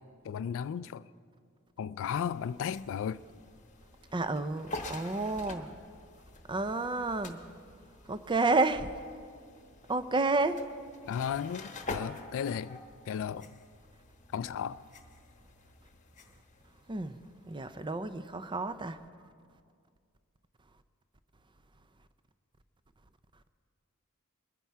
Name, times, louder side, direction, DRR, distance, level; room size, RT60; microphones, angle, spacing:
voice 1, 0.2-1.0 1.8-3.2 11.1-12.8 13.1-13.5 14.3-14.8, left 8 dB, 60° left, 0.3 m, -34 dB
sound 1, 2.1-18.1, left 2 dB, 35° left, 1.0 m, -47 dB
voice 2, 4.1-5.7 6.5-7.4 8.1-8.9 9.9-10.6 16.9-17.1 17.5-19.0, right 3 dB, 20° right, 0.5 m, -30 dB
22.0 x 9.9 x 4.7 m
head